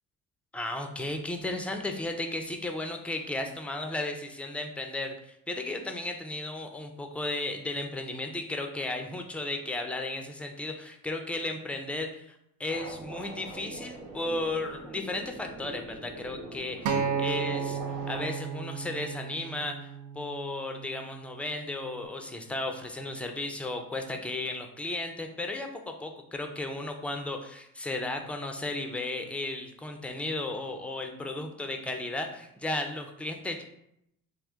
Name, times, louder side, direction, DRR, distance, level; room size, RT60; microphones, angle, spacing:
voice 1, 0.5-17.8 18.1-19.9 20.2-33.6, left 2 dB, 5° left, 4 dB, 0.4 m, -34 dB
sound 1, 12.7-18.3, right 2 dB, 75° right, 1.0 m, -43 dB
Acoustic guitar, 16.9-21.1 21.9-22.1, right 6 dB, 45° right, 0.5 m, -33 dB
3.6 x 2.4 x 3.5 m, 0.77 s
hypercardioid pair, 55°, 44 cm